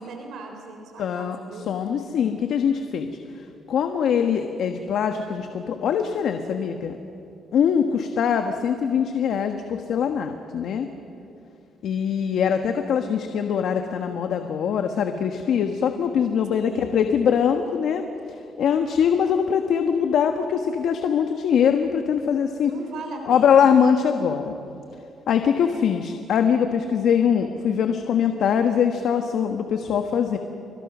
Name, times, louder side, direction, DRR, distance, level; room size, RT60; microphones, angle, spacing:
voice 1, 0.0-1.7 16.6-17.0 22.6-23.8, right 2 dB, 75° right, 3 dB, 4.0 m, -38 dB
voice 2, 1.0-3.2 3.7-7.0 7.5-10.9 11.8-18.1 18.6-22.7 23.3-24.5 25.3-30.4, left 7 dB, 70° left, 6 dB, 1.4 m, -22 dB
29.5 x 25.0 x 6.2 m, 2.8 s
cardioid pair, 90°, 0 cm